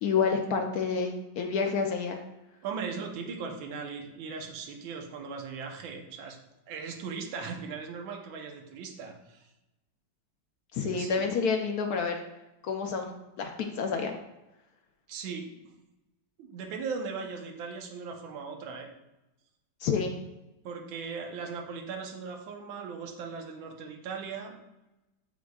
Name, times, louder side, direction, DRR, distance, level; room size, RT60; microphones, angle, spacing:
voice 1, 0.0-2.2 10.7-12.1 12.6-14.1 19.8-20.2, left 5 dB, 75° left, 3 dB, 0.8 m, -29 dB
voice 2, 2.6-6.4 6.7-9.5 10.8-11.3 15.1-15.5 16.4-18.9 20.6-24.6, right 5 dB, 75° right, 3 dB, 1.6 m, -38 dB
7.3 x 6.1 x 2.3 m, 0.97 s
omnidirectional pair, 2.2 m